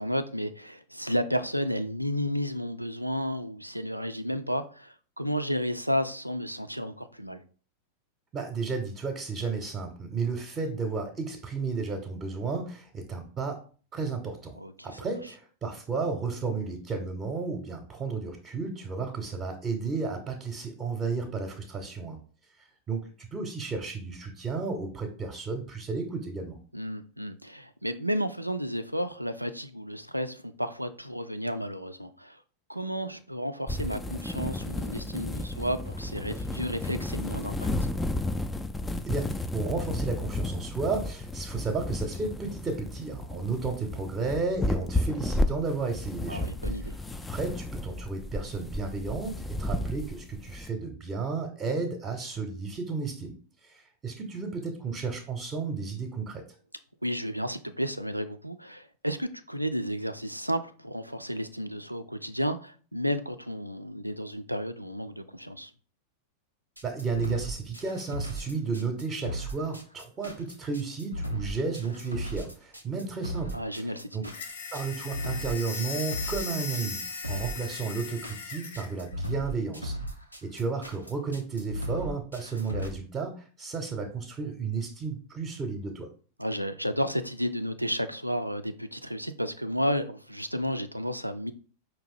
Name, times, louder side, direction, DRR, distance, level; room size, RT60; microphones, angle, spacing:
voice 1, 0.0-7.4 14.6-15.0 26.7-32.4 32.7-37.7 46.3-47.0 57.0-65.7 73.5-74.3 86.4-91.5, equal, 90° right, 0.3 m, -32 dB
voice 2, 8.3-13.6 13.9-14.6 14.8-22.2 22.6-26.6 39.0-46.5 47.3-53.4 53.6-56.4 66.8-74.3 74.7-79.9 80.4-86.1, right 4 dB, 25° right, 0.8 m, -33 dB
sound 1, 33.7-50.7, left 1 dB, 10° left, 0.3 m, -33 dB
sound 2, 66.8-82.9, right 1 dB, 90° left, 0.7 m, -36 dB
sound 3, 74.3-78.9, left 5 dB, 65° left, 0.9 m, -38 dB
4.8 x 2.7 x 3.7 m
figure-of-eight pair, 90°, 0 cm